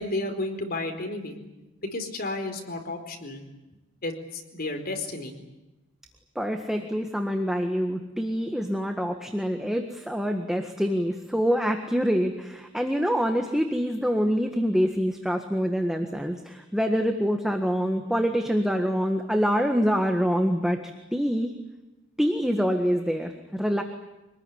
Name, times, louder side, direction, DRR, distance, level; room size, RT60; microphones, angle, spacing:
voice 1, 0.0-1.4 1.9-3.4 4.0-5.3, left 2 dB, 50° left, 5 dB, 4.5 m, -32 dB
voice 2, 6.4-20.8 21.1-21.5 22.2-23.8, equal, ahead, 4 dB, 1.6 m, -25 dB
26.0 x 20.0 x 9.9 m, 1.0 s
head